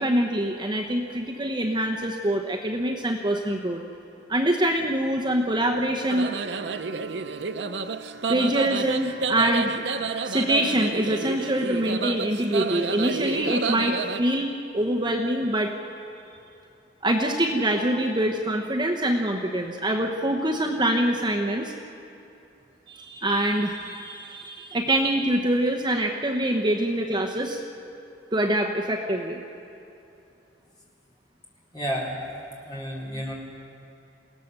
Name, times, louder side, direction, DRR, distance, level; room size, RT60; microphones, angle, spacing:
voice 1, 0.0-3.8 4.3-6.3 8.3-9.7 10.2-15.7 17.0-21.7 22.9-27.6 28.3-29.4, right 1 dB, 25° right, 1 dB, 1.0 m, -25 dB
sound 1, 6.1-14.2, right 5 dB, 70° right, 0.7 m, -30 dB
voice 2, 31.7-32.2 32.6-33.3, equal, 25° left, -5 dB, 4.3 m, -31 dB
28.5 x 17.5 x 6.8 m, 2.8 s
head